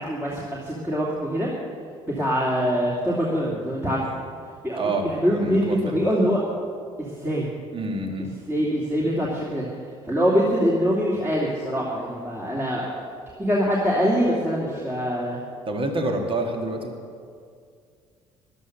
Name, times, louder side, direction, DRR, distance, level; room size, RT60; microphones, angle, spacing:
voice 1, 0.0-1.5 2.0-4.0 4.6-6.4 7.0-7.5 8.4-9.6 10.0-12.9 13.4-15.4, equal, 15° right, -5 dB, 2.7 m, -24 dB
voice 2, 4.8-5.9 7.7-8.3 15.7-16.9, right 2 dB, 35° right, 3 dB, 2.1 m, -27 dB
14.0 x 11.5 x 6.8 m, 2.2 s
figure-of-eight pair, 50°, 16 cm